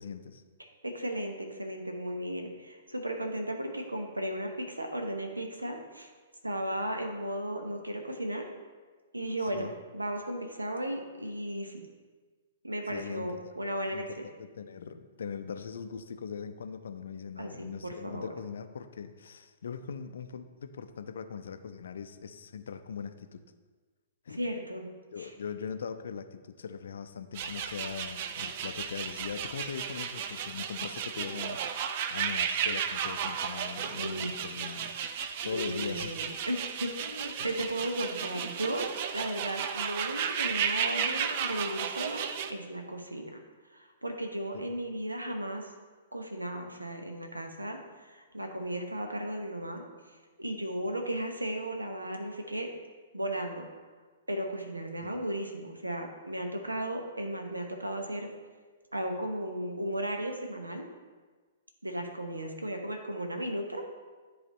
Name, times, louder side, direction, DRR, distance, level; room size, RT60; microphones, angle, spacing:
voice 1, 0.0-0.4 9.4-9.7 12.9-13.5 13.9-23.4 24.3-24.4 25.1-36.2 37.4-37.5 44.5-44.7 55.0-55.2, left 6 dB, 60° left, 9 dB, 0.4 m, -41 dB
voice 2, 0.6-6.1 6.4-8.5 9.1-9.7 9.9-11.8 12.6-14.0 17.4-18.3 24.4-24.9 25.2-25.3 34.0-34.3 35.4-38.9 39.1-42.2 42.5-43.3 43.7-45.7 46.1-49.8 50.4-52.7 53.1-53.7 54.3-58.3 58.9-60.8 61.8-63.9, right 1 dB, 80° right, 3 dB, 0.9 m, -35 dB
sound 1, 27.3-42.5, right 7 dB, 40° right, 0.4 m, -34 dB
9.8 x 3.4 x 4.1 m, 1.4 s
figure-of-eight pair, 115°, 0 cm